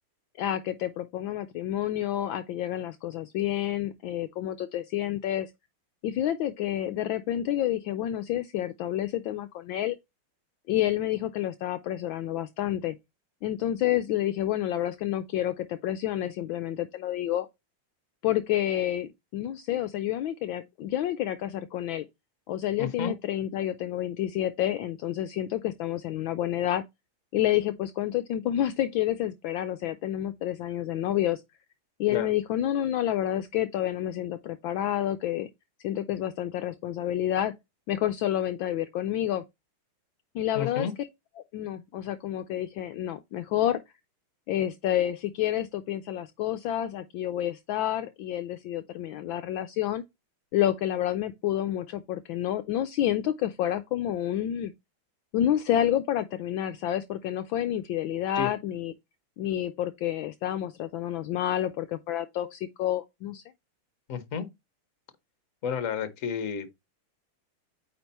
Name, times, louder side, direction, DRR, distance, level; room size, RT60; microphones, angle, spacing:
voice 1, 0.4-5.5 6.0-10.0 10.7-13.0 13.4-17.5 18.2-22.1 22.5-26.8 27.3-31.4 32.0-35.5 35.8-37.5 37.9-39.4 40.3-41.1 41.5-43.8 44.5-50.0 50.5-54.7 55.3-58.9 59.4-63.4, left 12 dB, 75° left, 1.2 m, -29 dB
voice 2, 22.8-23.1 32.1-32.3 40.5-40.9 58.4-58.5 64.1-64.5 65.6-66.7, left 7 dB, 45° left, 1.2 m, -31 dB
8.9 x 3.6 x 4.1 m
omnidirectional pair, 2.4 m